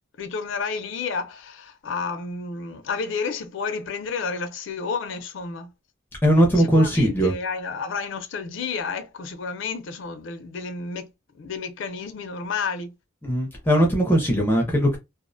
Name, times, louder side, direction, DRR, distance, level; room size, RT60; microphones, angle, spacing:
voice 1, 0.2-5.7 6.6-11.1 11.4-12.9, left 5 dB, 70° left, 0.4 m, -31 dB
voice 2, 6.2-7.3 13.2-15.0, equal, 10° left, 0.4 m, -19 dB
2.4 x 2.0 x 2.5 m
head